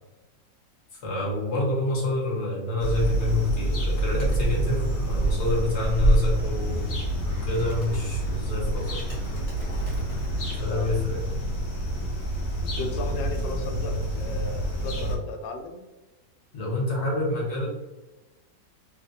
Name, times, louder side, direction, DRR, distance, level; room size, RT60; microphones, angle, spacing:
voice 1, 0.9-6.9 7.3-9.0 10.6-11.2 16.5-17.7, left 2 dB, 45° left, -4 dB, 1.2 m, -27 dB
sound 1, 2.8-15.2, right 1 dB, 70° left, 0.6 m, -29 dB
Animal, 4.1-10.6, right 2 dB, 25° left, 1.1 m, -29 dB
voice 2, 12.8-15.8, left 3 dB, 85° left, 4 dB, 1.3 m, -35 dB
3.2 x 2.5 x 2.6 m, 1.1 s
omnidirectional pair, 1.9 m